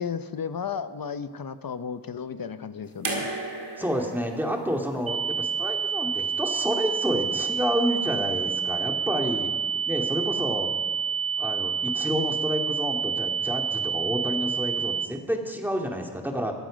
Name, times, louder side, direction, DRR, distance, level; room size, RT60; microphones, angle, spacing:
voice 1, 0.0-3.3, left 6 dB, 60° left, 12 dB, 0.8 m, -33 dB
sound 1, 3.0-6.2 7.4-7.5, right 2 dB, 85° right, 2.3 m, -36 dB
voice 2, 3.8-9.5 9.9-10.7 11.4-16.5, equal, 5° right, 1 dB, 2.3 m, -29 dB
sound 2, 5.1-15.1, right 6 dB, 35° right, 0.5 m, -28 dB
22.5 x 7.6 x 5.2 m, 1.5 s
cardioid pair, 45°, 39 cm